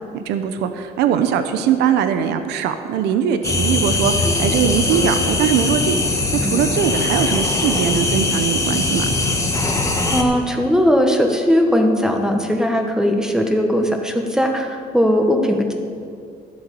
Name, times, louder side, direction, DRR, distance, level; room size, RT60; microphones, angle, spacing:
voice 1, 0.1-6.0 6.3-9.1, right 8 dB, 90° right, 9 dB, 0.8 m, -21 dB
sound 1, 3.4-10.2, left 2 dB, 20° left, 1.5 m, -20 dB
voice 2, 10.1-15.7, equal, 5° right, 3 dB, 1.5 m, -18 dB
13.0 x 8.0 x 6.9 m, 2.3 s
cardioid pair, 110°, 17 cm